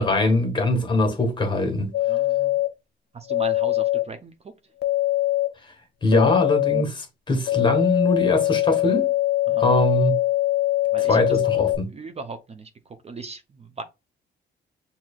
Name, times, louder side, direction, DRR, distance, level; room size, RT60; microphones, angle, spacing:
voice 1, 0.0-1.9 6.0-9.1 9.6-10.2 11.1-11.9, left 2 dB, 25° left, 1.4 m, -22 dB
sound 1, 1.9-2.7 3.3-4.0 4.8-5.5 6.1-6.8 7.5-11.8, left 15 dB, 55° left, 0.7 m, -22 dB
voice 2, 2.1-2.6 3.1-4.3 9.5-9.7 10.9-11.5 11.9-13.8, right 3 dB, 30° right, 0.5 m, -38 dB
5.9 x 2.8 x 2.3 m
cardioid pair, 90°, 20 cm